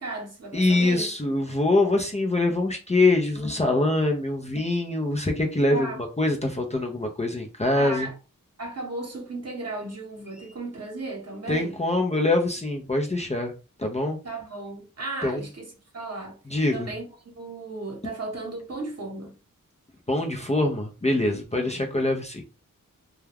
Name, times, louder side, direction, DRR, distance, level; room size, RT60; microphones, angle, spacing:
voice 1, 0.0-1.1 5.7-6.0 7.7-8.1 8.6-11.8 14.2-16.4 16.7-17.0 17.3-19.3 21.6-22.0, right 2 dB, 50° right, 1.0 m, -35 dB
voice 2, 0.5-8.1 11.5-13.5 13.8-14.2 15.2-15.4 16.5-16.9 20.1-22.4, left 2 dB, 20° left, 0.5 m, -24 dB
2.3 x 2.2 x 3.3 m
wide cardioid pair, 60°, 34 cm